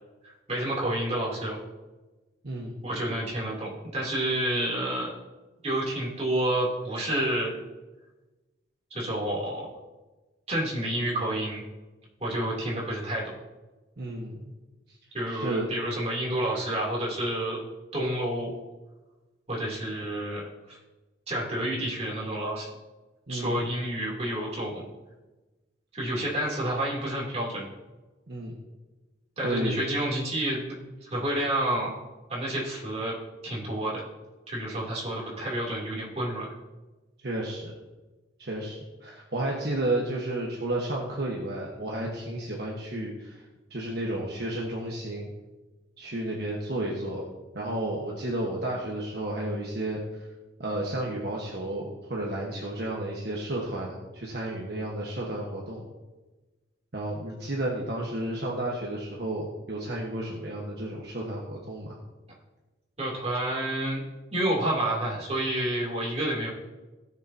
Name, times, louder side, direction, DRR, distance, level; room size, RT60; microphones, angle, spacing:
voice 1, 0.5-1.6 2.8-5.1 5.6-7.5 8.9-9.7 10.5-11.6 12.2-13.2 15.1-17.6 17.9-18.5 19.5-20.4 20.7-20.8 21.3-22.7 23.3-24.8 25.9-27.6 29.4-31.9 32.3-33.1 33.4-34.0 34.5-36.5 63.0-64.0 64.3-66.5, right 1 dB, 35° right, -5 dB, 3.0 m, -29 dB
voice 2, 2.4-2.9 14.0-14.5 14.9-15.0 15.3-15.7 23.3-23.7 28.3-28.5 29.4-29.8 37.2-37.7 38.4-43.4 43.7-45.3 46.0-47.3 47.5-50.3 50.6-55.8 56.9-62.0, right 1 dB, 60° right, -3 dB, 1.3 m, -32 dB
17.0 x 6.7 x 2.8 m, 1.2 s
head